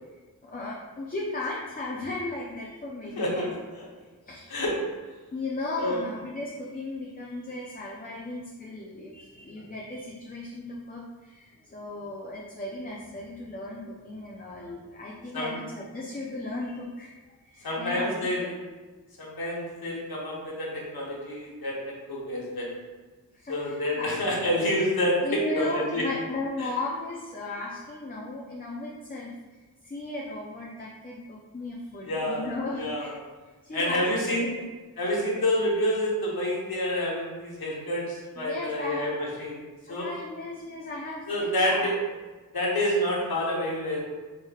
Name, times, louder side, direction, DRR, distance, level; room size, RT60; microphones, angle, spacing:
voice 1, 0.4-3.5 4.2-4.5 5.3-17.1 17.4-18.5 23.3-24.1 25.2-29.3 29.8-33.2 33.6-34.7 38.4-39.0 39.9-41.9, left 2 dB, 25° left, -4 dB, 0.5 m, -36 dB
voice 2, 3.2-3.8 4.5-4.8 5.8-6.0 15.3-15.6 17.6-18.5 19.2-22.7 23.5-26.1 26.6-26.7 32.0-32.5 32.8-33.1 33.7-34.5 35.0-39.6 39.9-40.1 41.3-42.0 42.5-44.0, left 1 dB, 75° left, -3 dB, 1.1 m, -28 dB
4.6 x 3.2 x 2.4 m, 1.3 s
wide cardioid pair, 90°, 37 cm